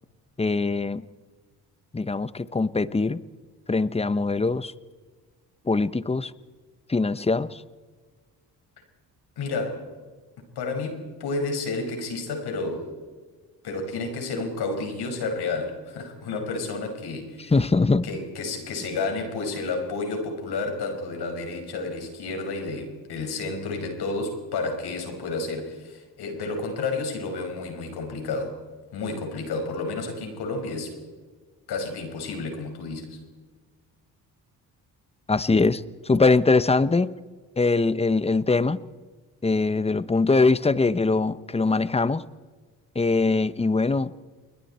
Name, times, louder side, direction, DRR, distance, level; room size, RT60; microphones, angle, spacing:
voice 1, 0.4-1.0 1.9-3.2 3.7-4.7 5.6-6.3 6.9-7.6 17.5-18.1 35.3-37.1 37.6-38.8 39.4-42.2 42.9-44.1, left 3 dB, 15° left, 16 dB, 0.9 m, -22 dB
voice 2, 9.4-9.8 10.6-12.9 13.6-17.5 18.0-28.6 28.9-30.9 31.7-33.2, left 3 dB, 70° left, 4 dB, 5.7 m, -31 dB
29.5 x 21.5 x 4.4 m, 1.4 s
supercardioid pair, 70°, 40 cm